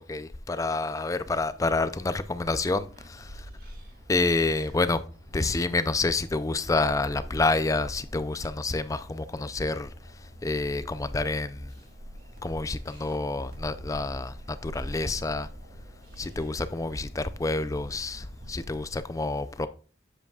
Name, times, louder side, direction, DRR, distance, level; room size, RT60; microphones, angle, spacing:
voice 1, 0.0-3.5 4.1-5.0 5.3-9.9 10.2-11.7 12.4-15.5 16.2-19.7, left 3 dB, 20° left, 0.4 m, -28 dB
sound 1, 1.8-19.0, equal, 50° right, 1.7 m, -46 dB
7.8 x 7.2 x 2.3 m
head